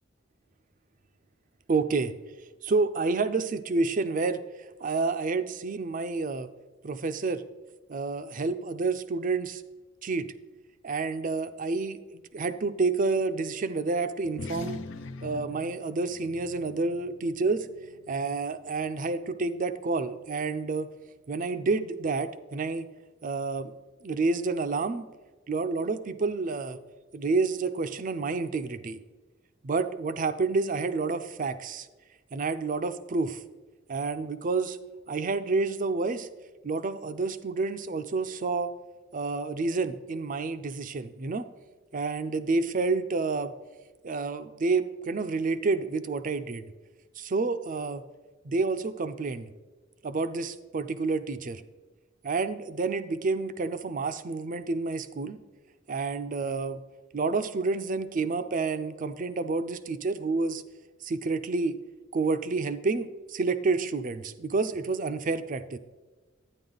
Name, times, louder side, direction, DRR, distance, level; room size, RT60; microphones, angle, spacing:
voice 1, 1.7-2.1 2.6-4.4 4.8-6.5 6.8-7.4 7.9-9.6 10.0-10.3 10.8-12.0 12.3-14.8 15.2-17.7 18.1-20.9 21.3-22.9 23.2-23.7 24.0-25.1 25.5-26.8 27.1-29.0 29.6-31.9 32.3-33.4 33.9-34.8 35.1-36.3 36.6-38.7 39.1-41.5 41.9-43.5 44.0-46.6 47.2-48.0 48.4-49.5 50.0-51.6 52.2-55.4 55.9-56.8 57.1-60.6 61.0-61.8 62.1-65.8, right 3 dB, 40° right, 11 dB, 0.5 m, -29 dB
sound 1, 14.2-19.0, left 3 dB, 65° left, 0.5 m, -43 dB
11.0 x 9.4 x 3.9 m, 1.3 s
head